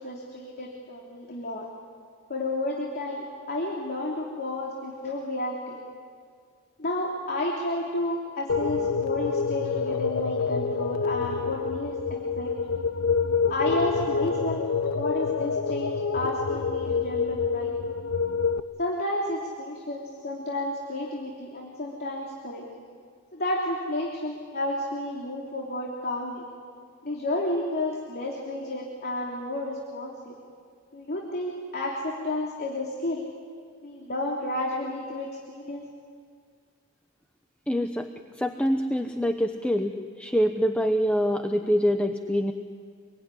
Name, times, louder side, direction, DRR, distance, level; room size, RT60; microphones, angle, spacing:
voice 1, 0.0-1.7 2.3-5.8 6.8-12.7 13.5-14.6 14.9-17.9 18.8-22.7 23.3-26.4 27.0-30.4 30.9-33.2 33.8-35.8, left 1 dB, 45° left, -2 dB, 3.2 m, -31 dB
sound 1, 8.5-18.6, left 5 dB, 80° left, 0.9 m, -27 dB
voice 2, 37.7-38.1 38.4-42.5, equal, 5° left, 5 dB, 0.9 m, -25 dB
26.0 x 22.5 x 9.9 m, 2.1 s
head